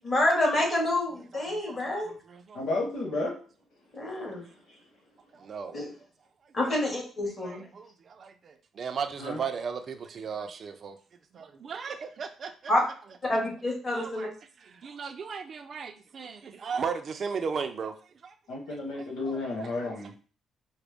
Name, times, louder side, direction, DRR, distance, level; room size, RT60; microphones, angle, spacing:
voice 1, 0.0-2.1 3.9-4.4 5.7-5.9 6.5-7.6 12.7-12.8 13.2-14.3, left 1 dB, 30° left, 2.0 m, -27 dB
voice 2, 1.5-2.7 4.2-4.4 5.3-5.8 6.7-6.8 7.4-11.0 11.3-12.7 13.9-14.3 14.6-17.9 18.2-18.3 18.7-19.4 19.8-20.1, right 6 dB, 50° right, 0.5 m, -37 dB
voice 3, 2.5-3.3 9.2-9.4 18.5-20.1, left 2 dB, 80° left, 1.3 m, -32 dB
4.9 x 2.2 x 3.5 m
cardioid pair, 90°, 0 cm